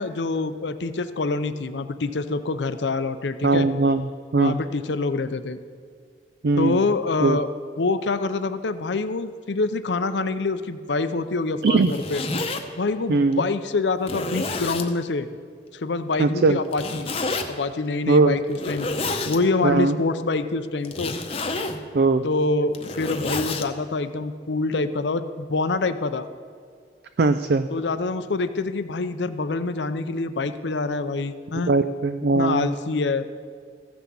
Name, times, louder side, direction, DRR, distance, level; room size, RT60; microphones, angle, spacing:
voice 1, 0.0-3.7 4.4-5.6 6.6-7.5 7.8-12.2 12.8-15.3 15.7-17.1 17.5-18.9 19.3-21.1 22.2-26.3 27.7-31.7 32.4-33.3, left 3 dB, 85° left, 11 dB, 0.6 m, -26 dB
voice 2, 3.4-4.1 4.3-4.6 6.4-6.8 7.2-7.4 11.6-11.9 13.1-13.5 16.2-16.6 18.1-18.4 19.6-20.0 21.9-22.3 27.2-27.7 31.5-32.7, right 3 dB, 60° right, 10 dB, 0.4 m, -20 dB
Zipper (clothing), 11.7-12.6 13.3-13.4 14.0-14.9 16.7-17.5 18.5-19.4 20.8-21.8 22.6-23.7, left 3 dB, 35° left, 0.8 m, -29 dB
15.0 x 6.1 x 7.0 m, 2.1 s
head